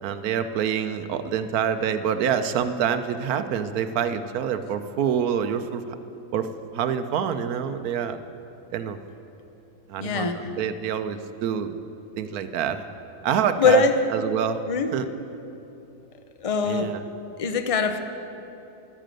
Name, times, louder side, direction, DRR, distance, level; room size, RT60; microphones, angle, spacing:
voice 1, 0.0-5.9 6.3-8.2 8.7-9.0 9.9-11.8 12.2-12.8 13.2-13.8 14.1-14.6 14.9-15.1 16.6-17.0, right 8 dB, 75° right, 10 dB, 1.1 m, -26 dB
voice 2, 10.0-10.5 13.6-13.9 14.7-14.9 16.4-16.9 17.4-18.0, left 4 dB, 45° left, 7 dB, 0.4 m, -22 dB
12.5 x 10.0 x 7.6 m, 2.9 s
omnidirectional pair, 1.7 m